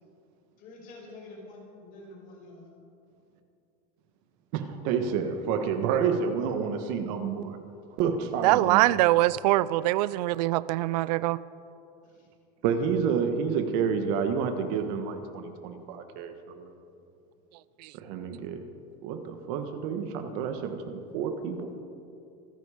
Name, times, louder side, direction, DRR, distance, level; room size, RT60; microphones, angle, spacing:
voice 1, 0.6-2.7 12.1-12.3, left 2 dB, 40° left, -1 dB, 5.2 m, -47 dB
voice 2, 4.5-7.6 8.0-8.8 12.6-16.7 17.9-18.6 19.0-21.7, right 6 dB, 60° right, 7 dB, 1.5 m, -29 dB
voice 3, 8.4-11.4, right 17 dB, 80° right, 19 dB, 0.5 m, -23 dB
25.5 x 10.5 x 5.0 m, 2.6 s
supercardioid pair, 155°, 21 cm